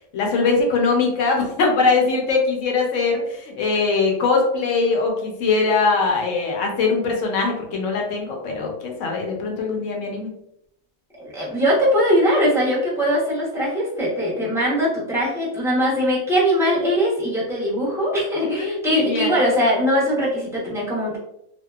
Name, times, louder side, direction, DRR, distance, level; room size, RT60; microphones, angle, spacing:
voice 1, 0.1-10.3 18.4-19.3, left 4 dB, 70° left, 1 dB, 0.9 m, -21 dB
voice 2, 11.2-21.2, equal, 5° right, -8 dB, 0.4 m, -21 dB
2.7 x 2.1 x 2.3 m, 0.80 s
omnidirectional pair, 1.5 m